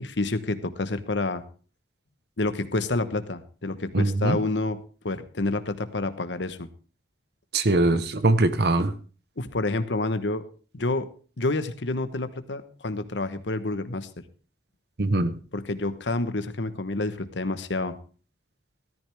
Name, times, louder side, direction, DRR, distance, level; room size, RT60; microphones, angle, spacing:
voice 1, 0.0-1.4 2.4-4.8 5.0-6.7 9.4-10.4 10.7-11.1 11.4-14.2 15.5-18.0, left 2 dB, 85° left, 11 dB, 1.1 m, -28 dB
voice 2, 3.9-4.4 7.5-8.9 15.0-15.3, right 2 dB, 65° right, 12 dB, 1.1 m, -22 dB
13.5 x 13.5 x 3.5 m, 0.38 s
head